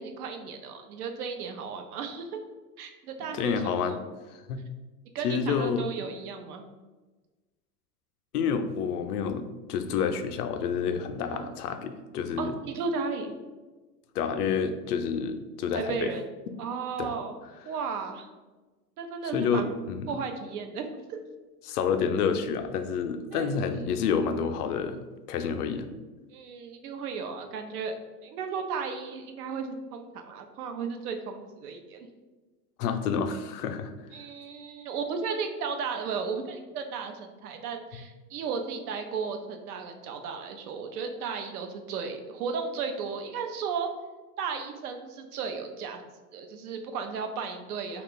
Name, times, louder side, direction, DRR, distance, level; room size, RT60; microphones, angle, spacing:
voice 1, 0.0-2.4 2.8-4.0 5.1-6.6 11.3-11.5 12.4-13.3 15.7-16.2 16.6-17.3 17.7-18.3 19.0-19.7 20.1-21.2 23.3-24.0 26.3-28.0 28.2-32.1 34.1-43.9 44.4-46.0 46.3-48.0, right 5 dB, 75° right, 5 dB, 0.7 m, -34 dB
voice 2, 3.3-4.0 4.5-4.6 5.2-5.9 8.3-12.5 14.1-16.1 17.0-17.1 19.3-20.1 21.6-25.9 32.8-33.9, left 6 dB, 80° left, 7 dB, 0.5 m, -29 dB
2.9 x 2.4 x 3.8 m, 1.2 s
hypercardioid pair, 115°, 46 cm